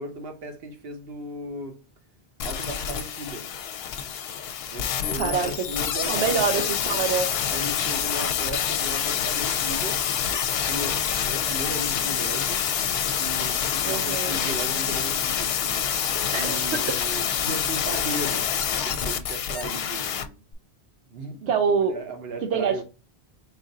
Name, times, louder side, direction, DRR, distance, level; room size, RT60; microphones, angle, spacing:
voice 1, 0.0-1.8 2.4-3.5 4.7-6.6 7.5-10.2 10.7-12.6 13.2-18.5 18.7-20.4 21.1-21.5 21.8-22.8, right 2 dB, 65° right, 1.1 m, -36 dB
sound 1, 2.4-20.2 20.5-20.6, left 8 dB, 70° left, 0.8 m, -27 dB
voice 2, 5.2-5.5 6.0-7.3 13.8-14.4 16.3-16.6 21.5-22.0 22.4-22.8, right 6 dB, 85° right, 0.9 m, -25 dB
4.0 x 2.5 x 3.8 m
omnidirectional pair, 1.1 m